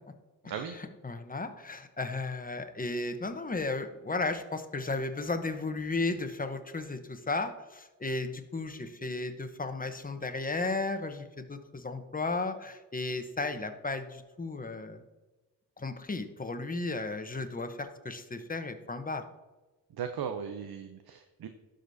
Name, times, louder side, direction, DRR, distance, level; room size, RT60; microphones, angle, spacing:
voice 1, 0.4-15.0 15.8-19.2, left 3 dB, 20° left, 8 dB, 1.0 m, -34 dB
voice 2, 20.0-21.5, right 7 dB, 65° right, 6 dB, 0.7 m, -37 dB
12.0 x 5.1 x 2.7 m, 1.1 s
cardioid pair, 55°, 40 cm